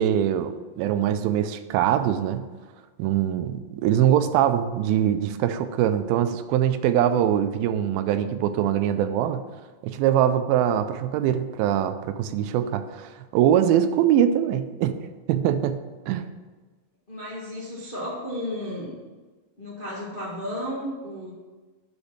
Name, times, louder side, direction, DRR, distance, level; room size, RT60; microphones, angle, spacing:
voice 1, 0.0-2.5 3.0-9.4 9.8-16.3, right 10 dB, 85° right, 10 dB, 2.4 m, -23 dB
voice 2, 17.1-18.9 19.6-21.3, left 1 dB, 80° left, -6 dB, 0.4 m, -33 dB
6.6 x 5.2 x 7.1 m, 1.3 s
omnidirectional pair, 4.2 m